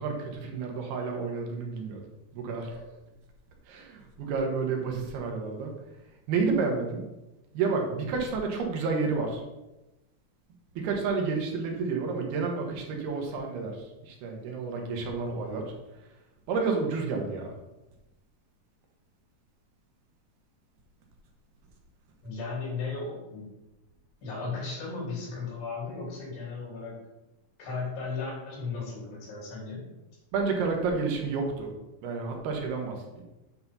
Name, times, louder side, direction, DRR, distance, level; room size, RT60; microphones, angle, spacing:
voice 1, 0.0-2.0 2.3-2.8 3.7-5.7 6.3-7.0 7.5-9.4 10.8-15.7 16.5-17.5 30.3-31.7 32.0-33.2, right 4 dB, 75° right, 2 dB, 3.1 m, -30 dB
voice 2, 22.2-23.5 24.2-27.0 27.6-29.9, left 4 dB, 75° left, -4 dB, 5.5 m, -35 dB
9.5 x 4.8 x 5.6 m, 1.0 s
omnidirectional pair, 4.7 m